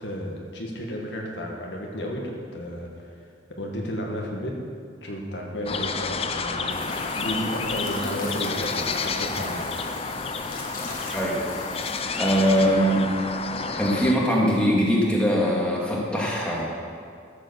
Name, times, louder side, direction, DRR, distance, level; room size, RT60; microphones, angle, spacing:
voice 1, 0.0-2.9 3.5-4.5 5.0-9.7, equal, 70° left, -1 dB, 1.9 m, -32 dB
sound 1, 5.7-14.1, left 4 dB, 35° left, 0.6 m, -30 dB
sound 2, 6.7-12.9 13.9-14.0, left 3 dB, 50° left, 2.0 m, -40 dB
voice 2, 12.2-13.0 13.8-16.6, equal, 5° left, -5 dB, 2.3 m, -21 dB
13.0 x 7.2 x 7.1 m, 2.3 s
head